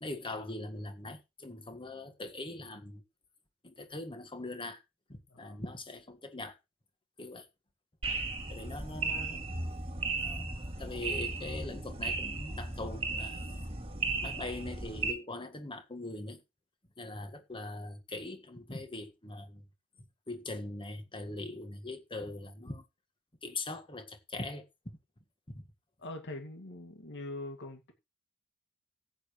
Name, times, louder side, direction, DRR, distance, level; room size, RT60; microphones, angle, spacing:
voice 1, 0.0-3.0 3.6-4.8 5.1-6.6 7.2-7.5 8.5-9.4 9.9-10.5 10.8-13.6 14.2-16.4 17.0-19.6 20.3-22.8 23.4-25.0 25.5-25.6, left 2 dB, 25° left, 1.7 m, -42 dB
voice 2, 5.3-5.6 26.0-27.9, left 2 dB, 55° left, 2.2 m, -43 dB
sound 1, 8.0-15.1, right 3 dB, 25° right, 2.5 m, -36 dB
14.5 x 9.0 x 3.2 m
head